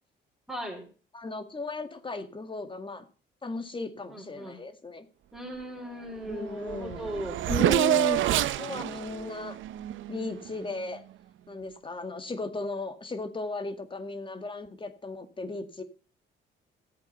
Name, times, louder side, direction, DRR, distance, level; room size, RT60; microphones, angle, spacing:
voice 1, 0.5-0.8 4.1-4.6 5.3-7.4, right 1 dB, ahead, 4.5 m, -38 dB
voice 2, 1.1-3.0 3.4-5.1 6.3-7.1 7.5-9.6 10.1-11.0 11.5-15.8, left 3 dB, 25° left, 2.1 m, -36 dB
Race car auto racing / Accelerating revving vroom, 6.3-6.4 6.6-10.6, right 14 dB, 75° right, 0.8 m, -27 dB
14.5 x 8.3 x 5.6 m
cardioid pair, 90°, 20 cm